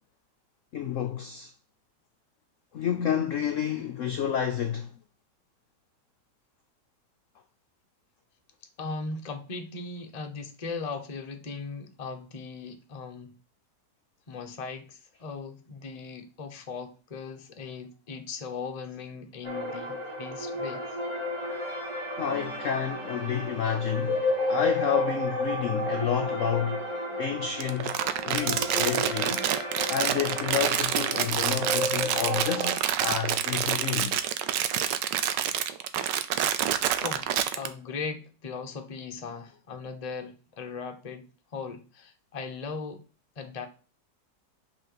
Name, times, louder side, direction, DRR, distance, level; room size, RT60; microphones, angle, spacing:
voice 1, 0.7-1.5 2.7-4.9 22.2-26.9 27.2-28.0 28.2-29.4 29.9-34.2, left 9 dB, 65° left, 0.8 m, -30 dB
voice 2, 8.8-13.3 14.3-20.8 36.5-43.0 43.4-43.7, left 4 dB, 30° left, 0.8 m, -38 dB
sound 1, 19.4-32.8, left 1 dB, 15° right, 1.9 m, -32 dB
Crumpling crinkling, 27.6-37.7, right 10 dB, 80° right, 1.3 m, -27 dB
5.5 x 4.4 x 5.9 m
omnidirectional pair, 1.9 m